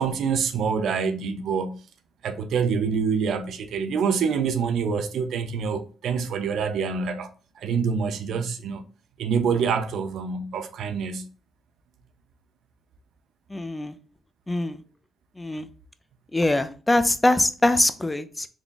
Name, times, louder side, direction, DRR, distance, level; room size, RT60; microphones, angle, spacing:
voice 1, 0.0-1.8 2.2-8.8 9.2-11.3, right 6 dB, 70° right, 0.5 m, -26 dB
voice 2, 13.5-13.9 14.5-14.8 15.4-15.7 16.3-18.5, left 2 dB, 15° left, 0.4 m, -23 dB
3.5 x 2.3 x 3.9 m
cardioid pair, 90°, 0 cm